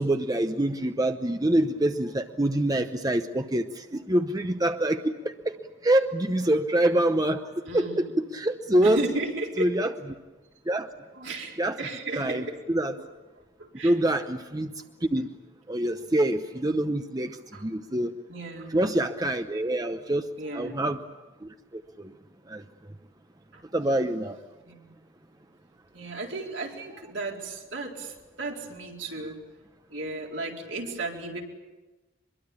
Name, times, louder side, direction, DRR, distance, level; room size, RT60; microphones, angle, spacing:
voice 1, 0.0-5.6 5.8-9.0 9.6-9.9 10.7-10.9 11.6-11.8 12.2-12.9 13.8-14.7 15.0-15.3 15.7-18.1 18.7-21.0 21.7-22.1 22.5-22.6 23.7-24.4, right 1 dB, 20° right, 7 dB, 0.8 m, -26 dB
voice 2, 7.6-8.1 8.8-9.7 11.1-12.6 13.0-13.1 13.6-13.9 17.5-17.6 18.3-18.7 20.4-20.9 23.5-23.6 24.6-24.9 25.9-29.4 29.9-31.4, right 2 dB, 70° right, 0 dB, 4.3 m, -35 dB
24.0 x 22.5 x 8.7 m, 1.2 s
head